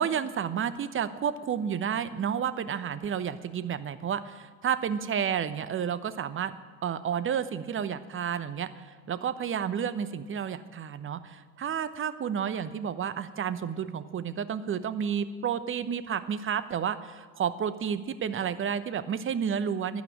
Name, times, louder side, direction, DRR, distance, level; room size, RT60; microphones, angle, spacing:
voice 1, 0.0-6.5 6.8-8.7 9.1-20.0, right 8 dB, 25° right, 14 dB, 0.9 m, -31 dB
12.0 x 9.4 x 9.9 m, 1.5 s
figure-of-eight pair, 65°, 49 cm